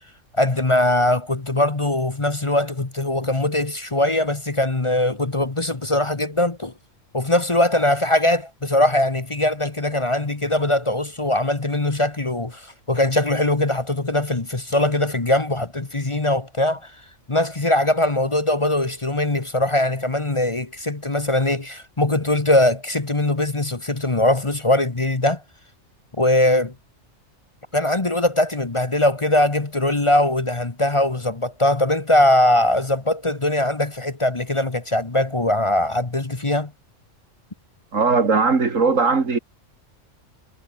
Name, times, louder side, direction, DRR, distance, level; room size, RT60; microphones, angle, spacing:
voice 1, 0.3-6.7 7.1-16.9 17.3-25.4 26.2-26.7 27.7-36.7, left 1 dB, 25° left, 1.3 m, -21 dB
voice 2, 37.9-39.4, right 4 dB, 90° right, 2.8 m, -18 dB
omnidirectional pair, 1.3 m